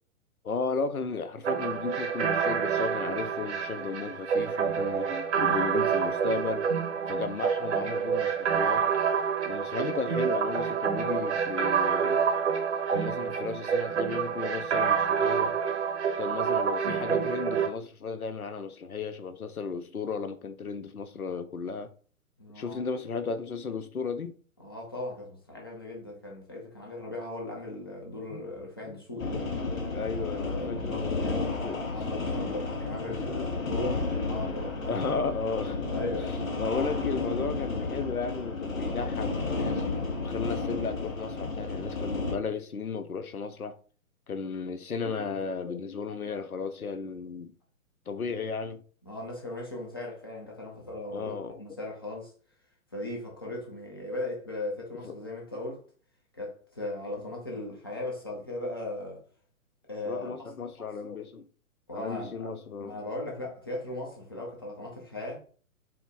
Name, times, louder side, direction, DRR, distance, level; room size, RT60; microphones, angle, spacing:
voice 1, 0.4-6.7 7.1-8.8 9.5-12.2 12.9-15.5 16.2-21.9 22.6-24.4 28.3-28.4 28.9-29.0 29.3-29.4 29.9-31.8 33.1-33.5 34.6-35.9 36.6-39.9 40.2-43.8 44.3-47.5 48.1-48.8 51.1-51.6 55.0-55.1 60.1-61.5 61.9-63.0, left 4 dB, 90° left, 0.6 m, -34 dB
sound 1, 1.4-17.7, right 6 dB, 55° right, 0.8 m, -28 dB
voice 2, 22.4-22.8 24.6-29.3 30.1-31.4 31.9-35.0 35.9-36.4 49.1-52.3 52.9-55.8 56.3-59.2 59.8-60.3 60.8-60.9 61.9-62.5 62.8-65.4, left 2 dB, 20° left, 0.4 m, -38 dB
sound 2, 29.2-42.3, left 3 dB, 65° left, 1.2 m, -32 dB
4.4 x 2.0 x 3.7 m
figure-of-eight pair, 125°, 42 cm